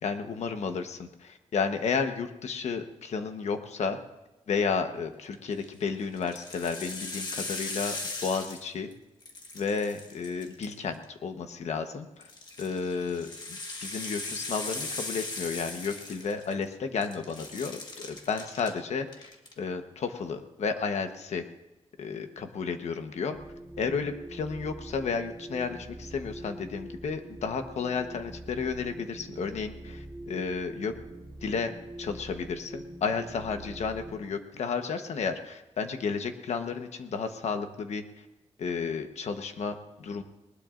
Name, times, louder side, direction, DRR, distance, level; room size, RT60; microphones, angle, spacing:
voice 1, 0.0-4.0 4.5-8.0 8.2-8.9 9.5-12.3 12.6-13.3 13.8-21.4 22.0-23.4 23.8-30.9 31.4-31.7 32.0-38.0 38.6-40.2, left 5 dB, 80° left, 7 dB, 1.1 m, -32 dB
sound 1, 5.3-5.7 6.2-8.9 9.2-11.0 12.2-16.7 17.0-18.7 19.1-19.5, left 2 dB, 40° left, 1.7 m, -38 dB
sound 2, 23.3-34.2, right 1 dB, 25° right, 2.8 m, -44 dB
20.0 x 19.5 x 2.6 m, 1.0 s
wide cardioid pair, 170°, 11 cm